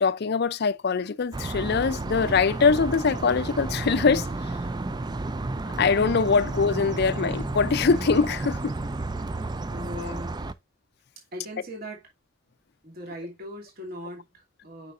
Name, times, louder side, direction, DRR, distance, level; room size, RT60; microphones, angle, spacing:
voice 1, 0.0-4.3 5.8-8.8 10.0-10.1, left 5 dB, 55° left, 0.5 m, -23 dB
sound 1, 1.3-10.5, right 2 dB, 20° right, 0.4 m, -32 dB
voice 2, 9.7-10.4 11.3-12.0 12.8-14.9, equal, 50° right, 2.6 m, -39 dB
8.1 x 5.7 x 2.5 m
head